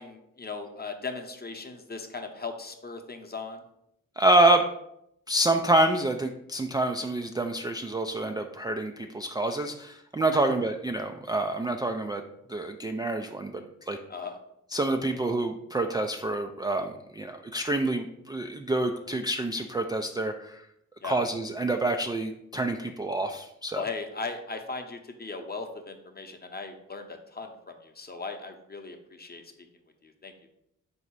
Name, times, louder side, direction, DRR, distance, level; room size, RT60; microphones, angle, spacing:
voice 1, 0.0-3.6 14.1-14.4 21.0-21.2 23.7-29.4 30.0-30.5, left 4 dB, 30° left, 5 dB, 0.8 m, -38 dB
voice 2, 4.2-4.6 5.3-12.2 12.5-14.0 14.7-20.6 21.0-23.8, right 2 dB, 15° right, 4 dB, 0.3 m, -27 dB
3.9 x 2.7 x 4.5 m, 0.79 s
supercardioid pair, 45°, 33 cm